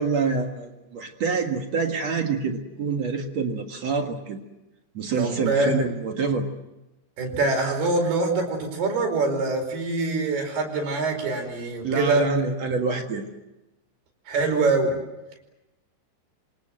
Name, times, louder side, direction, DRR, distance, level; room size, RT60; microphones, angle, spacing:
voice 1, 0.0-4.4 4.9-6.5 11.8-13.3, right 4 dB, 50° right, 4 dB, 2.5 m, -26 dB
voice 2, 5.2-5.8 7.2-12.2 14.3-15.0, right 3 dB, 75° right, 3 dB, 6.9 m, -24 dB
27.5 x 25.0 x 7.7 m, 1.0 s
omnidirectional pair, 4.6 m